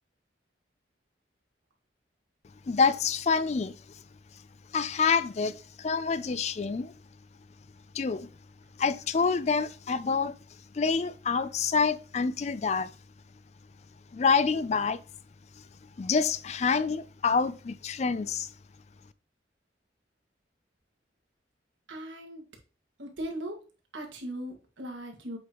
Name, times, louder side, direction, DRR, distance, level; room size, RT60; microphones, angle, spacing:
voice 1, 2.7-3.7 4.7-6.9 7.9-8.3 8.8-10.3 10.7-12.9 14.1-15.0 16.0-18.5, left 5 dB, 35° left, 0.4 m, -27 dB
voice 2, 21.9-22.5 23.0-23.6 23.9-25.4, right 1 dB, 85° right, 1.8 m, -38 dB
7.9 x 5.1 x 3.0 m
head